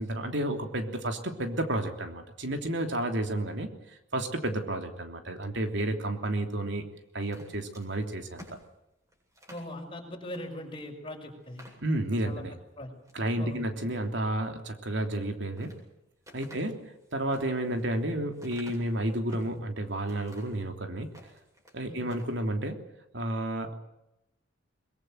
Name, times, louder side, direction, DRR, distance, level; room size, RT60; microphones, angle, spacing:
voice 1, 0.0-6.8 7.1-8.6 11.8-12.6 13.1-15.8 16.3-21.1 21.7-22.8 23.1-23.7, right 1 dB, 65° right, 5 dB, 3.2 m, -31 dB
sound 1, 7.2-9.7 10.3-10.5 10.8-10.9 11.4-12.3 12.8-13.3 15.1-15.8 16.2-19.6 20.1-20.6 21.0-21.8 22.0-22.3, equal, 15° right, 8.0 m, -51 dB
voice 2, 9.5-11.6 12.2-12.4 12.8-12.9 13.4-13.7 16.5-16.6 21.9-22.0, left 1 dB, 25° left, 3 dB, 5.8 m, -40 dB
23.5 x 22.5 x 7.9 m, 0.87 s
head